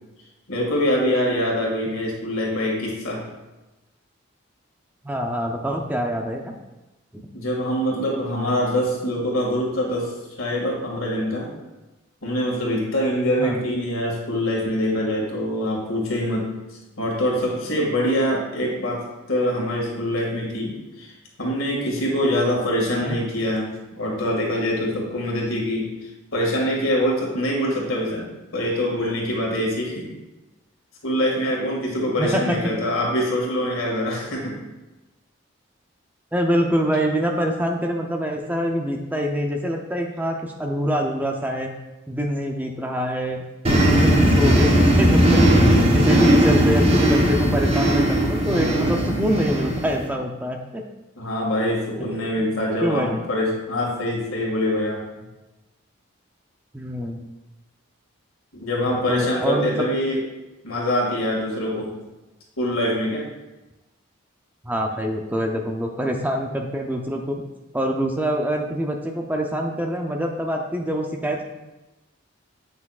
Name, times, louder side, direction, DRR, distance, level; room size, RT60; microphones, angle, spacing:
voice 1, 0.5-3.2 7.3-10.1 10.4-11.5 12.2-16.5 17.0-21.1 21.4-28.2 28.5-30.1 31.0-34.6 51.2-55.0 58.5-60.2 60.6-61.9 62.6-63.2, equal, 90° left, -2 dB, 1.9 m, -24 dB
voice 2, 5.0-6.5 7.1-7.2 13.4-13.6 23.0-23.2 32.2-32.6 36.3-41.7 42.1-43.4 43.7-44.7 45.0-50.8 52.4-52.5 52.8-53.1 56.7-57.3 58.9-59.9 64.6-67.4 67.7-71.4, equal, 10° right, 2 dB, 0.4 m, -25 dB
sound 1, 43.6-50.1, equal, 30° right, 0.9 m, -18 dB
8.1 x 5.9 x 2.4 m, 1.1 s
head